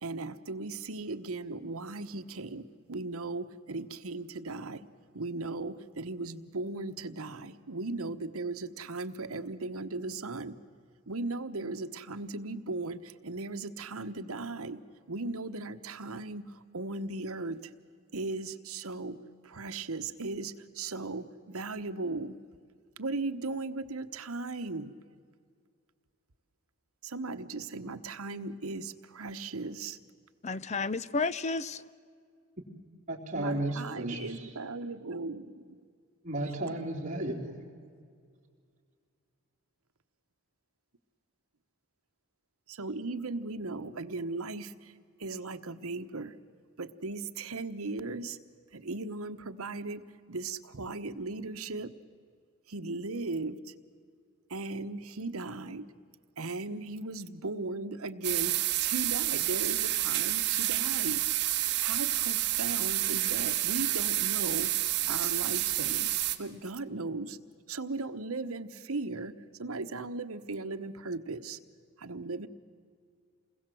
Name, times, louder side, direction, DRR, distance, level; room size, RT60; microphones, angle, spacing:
voice 1, 0.0-4.9 5.1-10.6 11.1-14.8 15.1-17.7 18.1-19.2 19.4-22.3 23.0-24.9 27.0-30.0 33.3-35.8 42.7-44.9 45.2-46.3 46.8-48.4 48.7-50.0 50.3-51.9 52.7-53.7 54.5-55.9 56.4-61.2 61.8-64.7 65.1-67.4 67.7-69.3 69.6-71.6 72.0-72.5, right 3 dB, 80° right, 1.1 m, -37 dB
voice 2, 30.4-31.7, left 3 dB, 30° left, 0.5 m, -31 dB
voice 3, 33.1-34.4 36.2-37.6, right 1 dB, 35° right, 3.7 m, -34 dB
sound 1, 58.2-66.4, right 14 dB, 50° right, 1.5 m, -29 dB
28.5 x 21.0 x 7.7 m
head